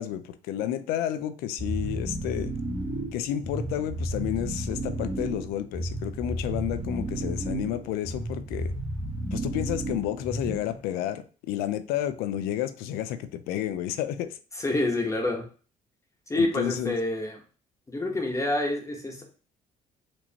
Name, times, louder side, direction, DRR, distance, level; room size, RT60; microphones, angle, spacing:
voice 1, 0.0-2.5 3.1-8.7 9.3-14.4 16.3-16.9, left 11 dB, 85° left, 0.5 m, -31 dB
sound 1, 1.6-10.8, right 1 dB, 45° right, 1.8 m, -32 dB
voice 2, 14.6-15.4 16.3-17.4 17.9-19.2, left 2 dB, 20° left, 1.2 m, -27 dB
4.3 x 2.9 x 2.9 m
supercardioid pair, 85°, 15 cm